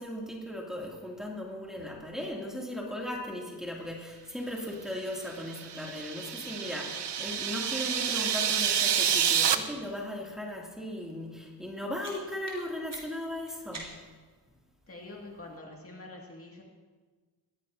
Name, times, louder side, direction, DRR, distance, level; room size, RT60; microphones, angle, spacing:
voice 1, 0.0-13.9, left 1 dB, ahead, -3 dB, 2.5 m, -37 dB
sound 1, 5.4-9.5, right 8 dB, 80° right, 0.9 m, -28 dB
sound 2, 11.7-14.3, right 2 dB, 50° right, 4.3 m, -48 dB
voice 2, 14.9-16.6, left 2 dB, 35° left, -1 dB, 2.2 m, -45 dB
21.0 x 15.0 x 2.7 m, 1.4 s
wide cardioid pair, 115°, 41 cm